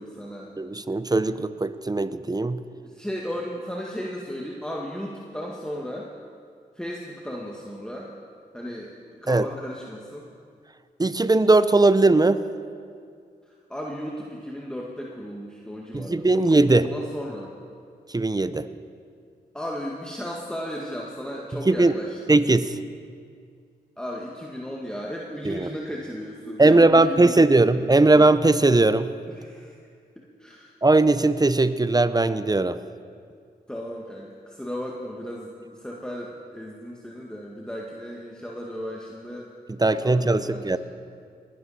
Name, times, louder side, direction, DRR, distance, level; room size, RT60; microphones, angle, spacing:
voice 1, 0.0-0.5 2.8-6.1 6.7-8.1 8.5-10.3 13.7-17.5 19.5-22.4 24.0-28.1 29.3-29.7 30.1-30.7 33.7-39.5 39.8-40.8, equal, 5° left, -2 dB, 1.7 m, -35 dB
voice 2, 0.6-2.6 9.3-9.5 11.0-12.4 15.9-16.9 18.1-18.7 21.7-21.9 22.3-22.8 25.5-25.7 26.6-29.1 30.8-32.8 39.8-40.8, right 2 dB, 20° right, 14 dB, 0.6 m, -19 dB
19.5 x 11.0 x 4.2 m, 2.2 s
supercardioid pair, 40°, 18 cm